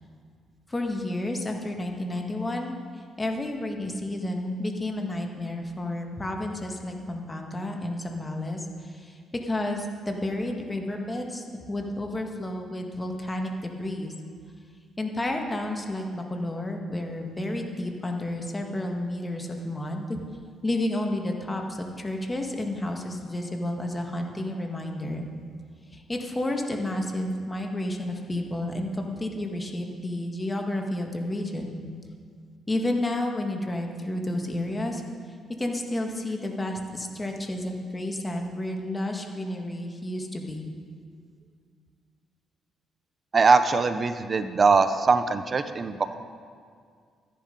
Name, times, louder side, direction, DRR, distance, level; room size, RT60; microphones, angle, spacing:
voice 1, 0.7-14.1 15.0-20.2 20.6-25.3 25.9-31.8 32.7-35.0 35.6-40.6, left 1 dB, 20° left, 2 dB, 1.7 m, -31 dB
voice 2, 43.3-46.2, right 4 dB, 40° right, 11 dB, 0.6 m, -21 dB
13.0 x 10.5 x 5.3 m, 2.1 s
cardioid pair, 90°, 0 cm